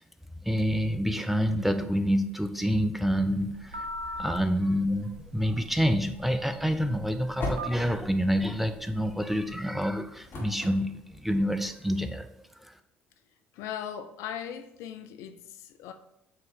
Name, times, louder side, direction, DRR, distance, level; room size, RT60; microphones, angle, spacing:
voice 1, 0.4-3.8 4.2-12.3, equal, 5° right, 0.5 m, -27 dB
Telephone, 3.1-9.6, equal, 85° right, 0.4 m, -42 dB
sound 1, 6.7-11.8, left 2 dB, 40° left, 1.7 m, -41 dB
voice 2, 13.5-15.9, left 9 dB, 60° left, 0.4 m, -39 dB
8.6 x 3.0 x 3.6 m
figure-of-eight pair, 55°, 6 cm